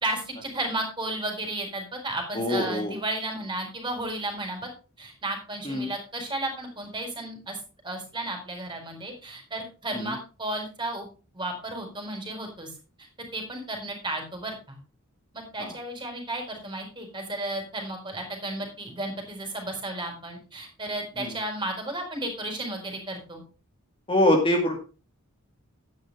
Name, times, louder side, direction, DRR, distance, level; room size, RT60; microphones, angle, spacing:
voice 1, 0.0-4.7 5.0-7.6 7.8-11.1 11.3-12.7 13.3-14.8 15.3-23.4, right 1 dB, 20° right, 3 dB, 4.6 m, -33 dB
voice 2, 2.3-2.9 5.6-5.9 9.9-10.1 15.6-15.7 21.2-21.3 24.1-24.8, left 1 dB, 25° left, 2 dB, 2.3 m, -24 dB
12.0 x 9.7 x 3.5 m, 0.33 s
head